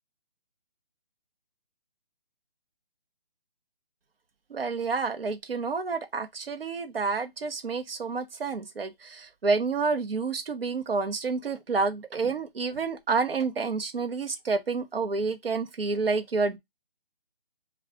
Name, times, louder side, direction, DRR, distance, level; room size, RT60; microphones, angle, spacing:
voice 1, 4.5-16.6, right 4 dB, 70° right, 1.0 m, -29 dB
4.8 x 2.4 x 3.5 m
hypercardioid pair, 175°, 30 cm